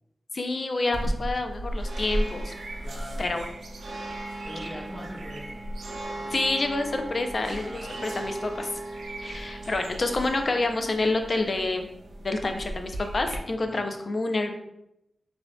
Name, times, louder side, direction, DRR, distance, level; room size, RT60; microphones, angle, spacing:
voice 1, 0.3-2.5 3.2-3.5 6.3-8.7 9.2-11.9 12.2-14.6, left 2 dB, 40° left, 5 dB, 0.4 m, -28 dB
sound 1, 0.9-13.4, right 1 dB, 85° right, 0.5 m, -35 dB
voice 2, 2.8-3.4 4.4-5.6 7.4-8.2 9.5-9.8 13.5-13.9, equal, 20° left, -5 dB, 1.1 m, -43 dB
5.5 x 2.6 x 2.2 m, 0.83 s
wide cardioid pair, 140°, 0 cm